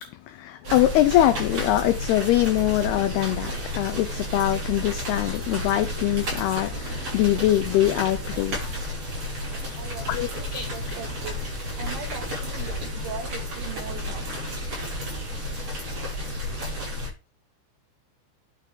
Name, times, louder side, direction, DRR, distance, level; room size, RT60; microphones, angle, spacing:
voice 1, 0.0-8.6 10.1-10.7, left 14 dB, 85° left, 2.2 m, -23 dB
sound 1, 0.6-17.1, equal, 35° right, 6.8 m, -32 dB
sound 2, 6.6-12.8, left 5 dB, 30° left, 4.1 m, -43 dB
voice 2, 9.8-11.4 11.8-14.3, right 7 dB, 75° right, 4.4 m, -39 dB
10.5 x 8.7 x 3.8 m
omnidirectional pair, 5.4 m